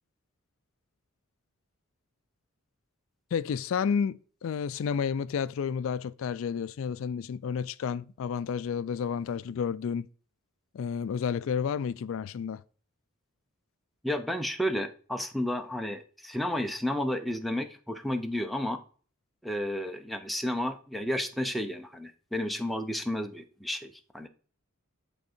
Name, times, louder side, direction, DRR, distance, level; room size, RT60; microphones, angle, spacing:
voice 1, 3.3-10.1 10.7-12.6, left 6 dB, 65° left, 0.3 m, -31 dB
voice 2, 14.0-18.8 19.4-24.3, left 1 dB, ahead, 0.6 m, -32 dB
10.5 x 3.5 x 4.3 m
head